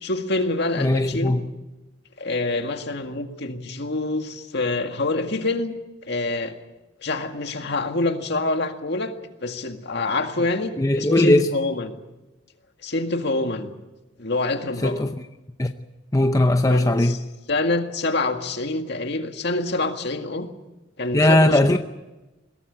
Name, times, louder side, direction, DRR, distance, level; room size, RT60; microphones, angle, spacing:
voice 1, 0.0-1.4 2.2-5.7 6.0-6.5 7.0-9.1 9.4-11.9 12.8-13.7 14.2-15.0 16.7-17.2 17.5-20.5 21.0-21.6, left 2 dB, 55° left, 1.9 m, -26 dB
voice 2, 0.8-1.5 10.8-11.5 14.8-15.1 15.6-15.7 16.1-17.2 21.1-21.8, left 1 dB, 15° left, 0.7 m, -18 dB
21.5 x 17.0 x 8.7 m
head